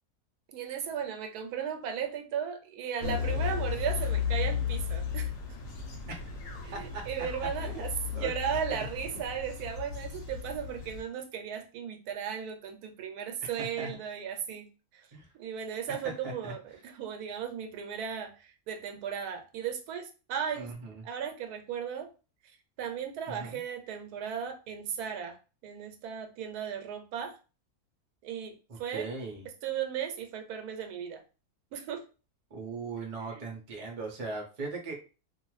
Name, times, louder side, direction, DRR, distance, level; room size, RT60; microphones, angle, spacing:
voice 1, 0.5-5.3 6.6-14.7 14.9-15.1 15.3-16.6 16.8-20.7 21.0-22.1 22.8-25.4 25.6-27.4 28.2-29.1 29.6-31.2 31.7-32.0 33.2-33.5, right 8 dB, 85° right, 5 dB, 1.1 m, -36 dB
sound 1, 3.0-11.0, left 7 dB, 65° left, 1.0 m, -34 dB
voice 2, 6.7-7.0 7.6-7.8 8.1-8.3 8.8-8.9 13.4-13.9 15.1-15.3 16.2-16.5 20.6-21.0 23.3-23.6 28.7-29.4 32.5-34.9, right 3 dB, 35° right, 0 dB, 0.6 m, -39 dB
2.5 x 2.3 x 3.1 m, 0.34 s
omnidirectional pair, 1.6 m